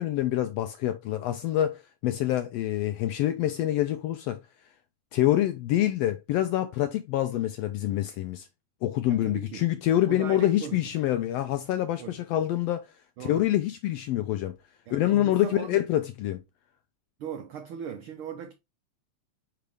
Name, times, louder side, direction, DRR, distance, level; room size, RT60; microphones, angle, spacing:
voice 1, 0.0-4.4 5.1-8.5 8.8-12.9 13.2-14.6 14.9-16.4, left 13 dB, 80° left, 1.4 m, -26 dB
voice 2, 9.1-9.7 10.1-10.8 12.0-12.2 13.2-13.5 14.9-15.8 17.2-18.5, right 7 dB, 85° right, 1.1 m, -38 dB
5.7 x 5.1 x 3.4 m
omnidirectional pair, 3.3 m